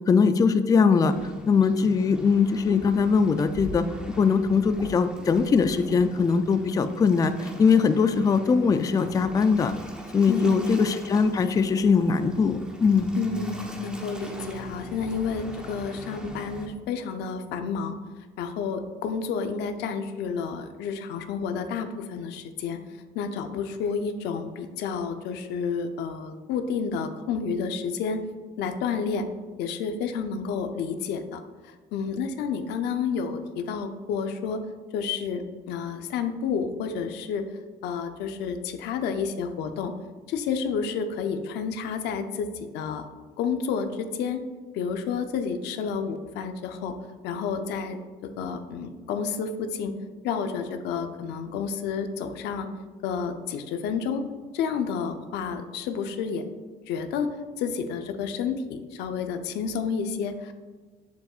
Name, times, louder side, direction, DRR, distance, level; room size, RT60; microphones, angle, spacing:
voice 1, 0.1-1.1 1.5-3.8 4.2-9.7 10.1-13.1, left 5 dB, 20° left, 10 dB, 0.3 m, -21 dB
Waves surf, 1.0-16.7, equal, 5° right, 1.0 m, -41 dB
voice 2, 10.3-10.7 13.2-18.0 18.4-22.8 23.1-28.2 28.6-29.3 29.6-34.6 34.9-37.5 37.8-39.9 40.3-43.0 43.4-44.4 44.7-46.9 47.2-49.9 50.2-52.7 53.0-54.2 54.5-56.4 56.9-57.3 57.6-60.5, left 6 dB, 85° left, 7 dB, 0.7 m, -30 dB
7.8 x 6.9 x 2.4 m, 1.4 s
cardioid pair, 110°, 17 cm